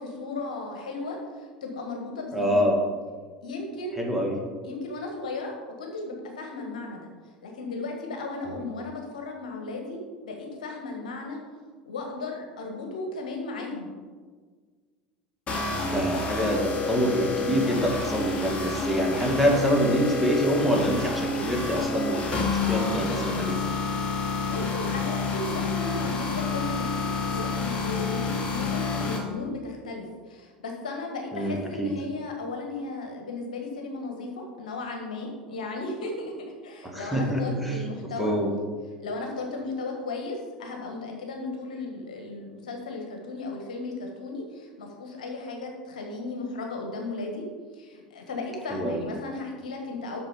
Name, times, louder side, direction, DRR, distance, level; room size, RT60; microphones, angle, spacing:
voice 1, 0.0-2.8 3.4-4.0 4.6-11.4 11.8-13.9 24.2-26.9 27.1-36.3 36.6-38.3 39.0-47.5 47.7-50.2, left 3 dB, 65° left, 2 dB, 1.6 m, -35 dB
voice 2, 2.3-2.8 4.0-4.4 15.8-23.6 31.3-31.9 36.9-38.5 48.7-49.0, equal, ahead, -1 dB, 2.0 m, -26 dB
sound 1, 15.5-29.2, left 4 dB, 30° left, 2.0 m, -29 dB
8.3 x 6.2 x 5.1 m, 1.5 s
figure-of-eight pair, 75°, 4 cm